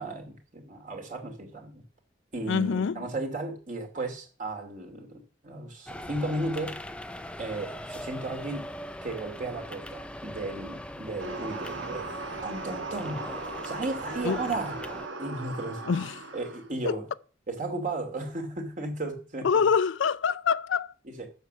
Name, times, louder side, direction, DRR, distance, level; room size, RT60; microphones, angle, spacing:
voice 1, 0.0-1.8 2.3-6.8 7.4-8.7 9.0-12.1 12.4-13.3 13.6-14.7 15.2-15.9 16.3-17.1 17.5-19.7 21.0-21.3, right 2 dB, 40° right, 2.5 m, -35 dB
voice 2, 2.5-3.0 14.2-14.4 15.9-16.1 16.9-17.0 19.4-20.9, left 6 dB, 70° left, 0.4 m, -25 dB
sound 1, 5.9-15.1, left 1 dB, 5° left, 0.5 m, -41 dB
sound 2, 11.2-16.7, right 3 dB, 65° right, 1.4 m, -38 dB
7.8 x 6.7 x 7.3 m
head